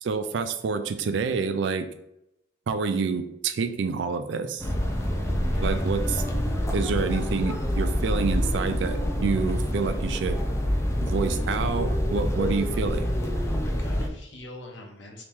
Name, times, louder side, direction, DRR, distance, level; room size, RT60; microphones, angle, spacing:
voice 1, 0.0-1.9 2.7-4.7 5.6-6.2 6.7-10.4 11.0-13.2, right 5 dB, 65° right, 9 dB, 0.4 m, -28 dB
sound 1, 4.6-14.1, equal, 15° left, 0.4 m, -26 dB
voice 2, 5.5-5.8 13.4-15.2, left 1 dB, 70° left, 1 dB, 0.8 m, -42 dB
3.0 x 2.9 x 3.5 m, 0.81 s
head